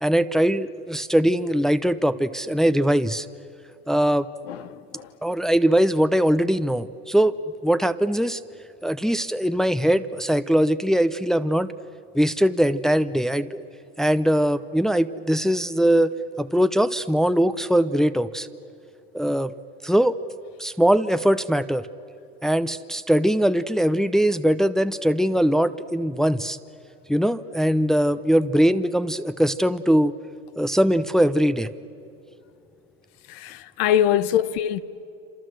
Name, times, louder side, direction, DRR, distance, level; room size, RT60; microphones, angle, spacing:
voice 1, 0.0-3.3 3.9-4.3 5.2-7.3 7.6-8.4 8.8-11.7 12.1-13.6 14.0-16.1 16.4-18.5 19.1-19.5 19.8-20.2 20.6-21.8 22.4-26.6 27.1-30.1 30.6-31.7, equal, ahead, 0.7 m, -21 dB
voice 2, 4.5-5.1 33.3-34.8, left 10 dB, 75° left, 1.2 m, -23 dB
27.5 x 27.5 x 7.7 m
supercardioid pair, 110°, 32 cm